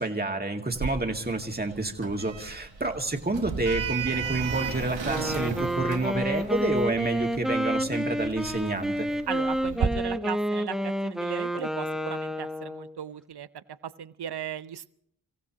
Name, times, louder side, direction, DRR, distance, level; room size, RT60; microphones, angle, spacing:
voice 1, 0.0-9.1, right 2 dB, 20° right, 3 dB, 2.0 m, -29 dB
Sliding door, 0.7-9.9, right 6 dB, 85° right, 1.4 m, -35 dB
Wind instrument woodwind instrument, 5.0-13.0, equal, ahead, 1.0 m, -29 dB
voice 2, 9.3-13.6 14.0-14.9, right 8 dB, 60° right, 15 dB, 0.8 m, -37 dB
30.0 x 15.5 x 2.9 m, 0.68 s
cardioid pair, 50°, 44 cm